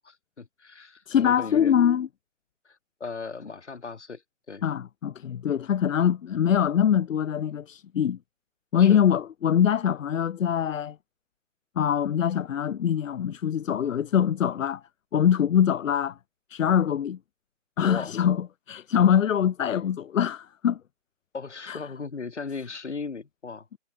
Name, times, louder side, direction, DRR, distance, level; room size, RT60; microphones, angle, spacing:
voice 1, 0.0-1.7 2.7-4.2 4.5-4.6 8.8-9.0 17.8-18.1 21.3-23.7, left 4 dB, 65° left, 2.0 m, -37 dB
voice 2, 1.1-2.1 4.6-8.2 8.7-11.0 11.8-14.8 15.1-16.2 16.5-17.2 17.8-20.8 21.7-21.8, left 9 dB, 90° left, 0.5 m, -23 dB
figure-of-eight pair, 165°, 38 cm